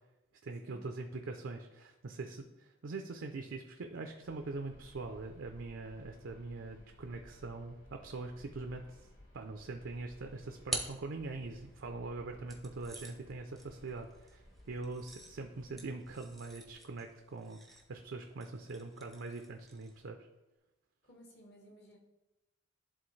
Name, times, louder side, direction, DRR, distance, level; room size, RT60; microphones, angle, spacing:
voice 1, 0.4-9.1 9.3-20.2, right 3 dB, 65° right, 4 dB, 0.5 m, -43 dB
sound 1, 4.2-16.7, left 1 dB, 80° left, 2.6 m, -59 dB
sound 2, 10.0-11.8 12.5-20.1, equal, ahead, 0.6 m, -47 dB
voice 2, 21.0-22.0, equal, 50° left, 1 dB, 1.2 m, -58 dB
11.0 x 3.8 x 3.2 m, 1.0 s
head